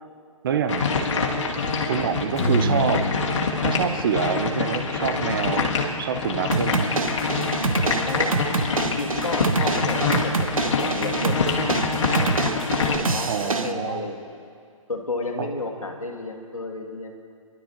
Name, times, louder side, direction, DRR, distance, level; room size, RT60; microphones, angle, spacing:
voice 1, 0.4-1.1 1.9-3.1 3.6-5.7 6.0-6.9 13.3-14.1 15.4-15.5, right 7 dB, 40° right, 9 dB, 0.7 m, -26 dB
sound 1, 0.7-13.0, left 4 dB, 60° left, 2.1 m, -25 dB
Strum, 2.3-7.6, left 1 dB, 30° left, 2.1 m, -31 dB
sound 2, 6.5-13.7, right 3 dB, 75° right, 1.0 m, -26 dB
voice 2, 8.1-8.4 8.8-11.5 11.9-12.3 12.8-14.3 14.9-17.2, left 3 dB, 75° left, 2 dB, 1.9 m, -32 dB
27.5 x 12.0 x 3.0 m, 2.2 s
figure-of-eight pair, 135°, 18 cm